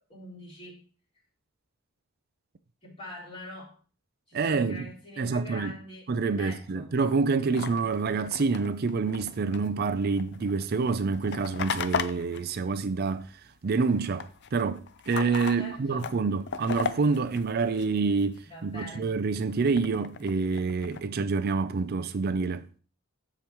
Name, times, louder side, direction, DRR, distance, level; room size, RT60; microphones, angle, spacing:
voice 1, 0.1-0.8 2.8-3.8 4.3-6.1 6.4-7.0 7.5-7.6 15.6-16.1 18.4-19.1, left 1 dB, 30° left, 3.9 m, -44 dB
voice 2, 4.3-4.9 5.2-5.7 6.1-13.3 13.6-22.7, right 4 dB, 50° right, 0.4 m, -27 dB
sound 1, 6.9-13.5 13.8-18.4 18.8-21.1, left 6 dB, 55° left, 0.5 m, -38 dB
14.5 x 5.0 x 3.0 m
head